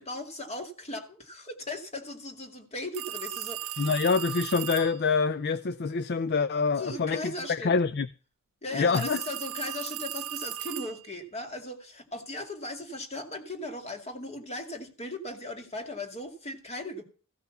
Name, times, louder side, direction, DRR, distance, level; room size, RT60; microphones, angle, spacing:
voice 1, 0.0-3.9 6.8-7.7 8.6-17.0, left 1 dB, 30° left, 2.3 m, -38 dB
sound 1, 2.9-5.0 8.9-11.2, right 13 dB, 85° right, 0.6 m, -37 dB
voice 2, 3.8-8.1 8.7-9.2, left 4 dB, 50° left, 0.5 m, -26 dB
15.5 x 5.8 x 7.1 m
head